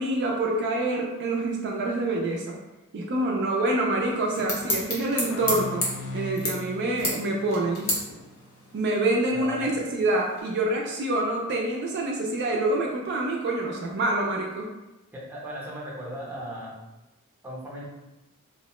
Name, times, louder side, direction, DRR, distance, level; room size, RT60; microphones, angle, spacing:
voice 1, 0.0-2.6 2.9-5.9 6.1-7.9 8.7-14.7, right 2 dB, 50° right, -1 dB, 0.3 m, -26 dB
sound 1, 4.0-10.4, left 1 dB, 85° left, 0.9 m, -33 dB
sound 2, 5.3-8.7, equal, 55° left, 0.3 m, -39 dB
voice 2, 9.3-9.7 15.1-16.7 17.4-17.8, equal, 10° right, -5 dB, 0.6 m, -37 dB
2.9 x 2.0 x 2.9 m, 1.0 s
head